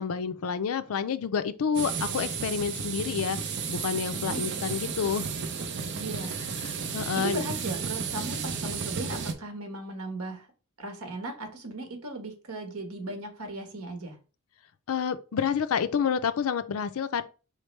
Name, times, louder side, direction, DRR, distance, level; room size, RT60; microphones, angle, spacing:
voice 1, 0.0-3.4 3.7-5.3 6.7-7.4 14.9-17.2, left 6 dB, 70° left, 0.4 m, -29 dB
sound 1, 1.7-9.3, right 6 dB, 50° right, 0.6 m, -33 dB
voice 2, 4.1-4.4 6.0-6.4 7.1-10.5 10.8-14.2, right 2 dB, 80° right, 1.3 m, -37 dB
4.8 x 3.3 x 3.1 m
head